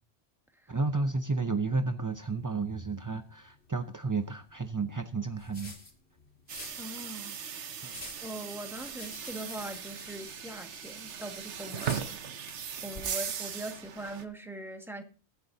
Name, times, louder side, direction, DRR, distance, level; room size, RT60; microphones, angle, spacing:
voice 1, 0.7-5.7 7.8-8.0, right 3 dB, 25° right, 0.4 m, -32 dB
sound 1, 2.1-14.3, left 2 dB, 50° left, 2.7 m, -51 dB
sound 2, 6.5-14.2, right 8 dB, 80° right, 1.2 m, -39 dB
voice 2, 6.8-7.4 8.2-12.5 12.8-15.0, right 1 dB, ahead, 1.7 m, -42 dB
23.0 x 8.0 x 2.7 m
omnidirectional pair, 1.2 m